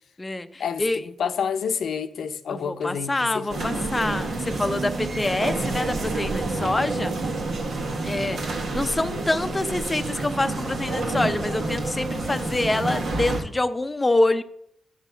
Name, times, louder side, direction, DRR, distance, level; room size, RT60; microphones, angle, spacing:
voice 1, 0.2-1.1 2.5-7.2 8.0-14.4, left 2 dB, 20° left, 0.6 m, -26 dB
voice 2, 1.2-3.9, left 7 dB, 70° left, 0.7 m, -29 dB
sound 1, 3.5-13.4, right 3 dB, 70° right, 1.7 m, -28 dB
7.2 x 6.3 x 5.6 m
cardioid pair, 90°, 0 cm